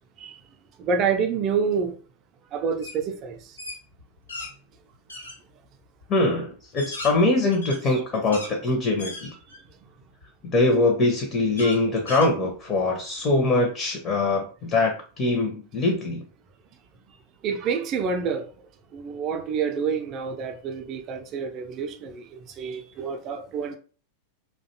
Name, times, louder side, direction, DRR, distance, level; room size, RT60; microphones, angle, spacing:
voice 1, 0.8-2.0 2.5-3.6 7.9-8.2 17.4-18.5 18.9-23.8, right 6 dB, 35° right, 0.4 m, -28 dB
sound 1, 2.8-3.0 3.3-4.5 5.1-5.4 6.0-6.1 6.6-8.5 9.0-9.7 10.2-10.3 11.6-12.8, left 2 dB, 75° left, 0.9 m, -37 dB
voice 2, 6.1-9.3 10.4-16.2, left 2 dB, 30° left, 0.6 m, -23 dB
2.5 x 2.2 x 2.7 m
figure-of-eight pair, 90°, 0 cm